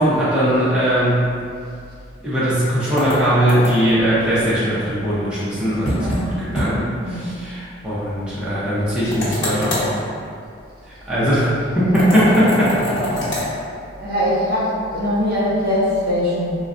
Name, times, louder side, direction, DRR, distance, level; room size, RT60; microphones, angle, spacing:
voice 1, 0.0-1.4 2.2-10.0 10.8-12.7, equal, 5° right, -11 dB, 0.6 m, -19 dB
sound 1, 3.0-4.0 5.8-6.2 6.5-6.7 7.0-7.1 9.1-9.9 11.9-13.5, left 1 dB, 35° left, 1.1 m, -24 dB
voice 2, 5.9-6.3 7.0-7.2 14.0-16.6, left 1 dB, 45° right, -7 dB, 0.7 m, -21 dB
4.5 x 2.1 x 2.5 m, 2.3 s
head